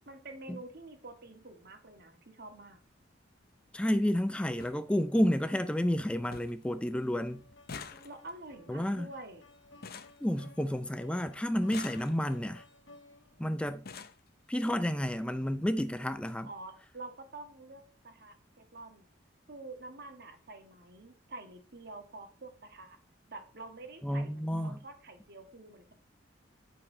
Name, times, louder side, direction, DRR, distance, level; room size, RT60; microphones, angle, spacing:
voice 1, 0.1-2.8 8.0-9.5 16.4-19.1 19.5-23.0 23.3-25.9, right 2 dB, 60° right, 1.7 m, -48 dB
sound 1, 2.5-2.7 3.9-4.0 4.2-4.3 4.6-4.8 5.2-5.7 6.0-6.1 6.3-6.7 7.0-11.0 11.5-12.5 13.3-13.4 13.7-14.3 15.2-15.3 15.7-15.8 16.1-16.2, left 5 dB, 55° left, 0.8 m, -48 dB
voice 2, 3.7-7.4 8.7-9.1 10.2-12.6 13.4-13.8 14.5-16.5 24.0-24.8, equal, 5° left, 0.4 m, -30 dB
sound 2, 6.0-13.5, left 2 dB, 70° left, 1.8 m, -58 dB
10.0 x 4.6 x 5.4 m
head